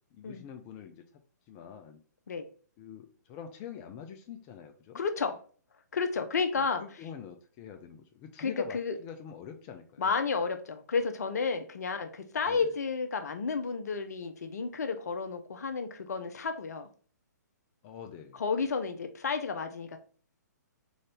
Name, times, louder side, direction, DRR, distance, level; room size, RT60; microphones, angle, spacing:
voice 1, 0.1-1.0 1.5-2.0 2.8-5.0 6.6-10.2 12.5-12.7 17.8-18.4, left 8 dB, 25° left, 5 dB, 0.5 m, -45 dB
voice 2, 4.9-5.4 5.9-6.8 8.4-9.0 10.0-16.9 18.3-20.0, left 5 dB, 60° left, 8 dB, 0.7 m, -31 dB
3.9 x 3.9 x 3.4 m, 0.42 s
figure-of-eight pair, 130°, 10 cm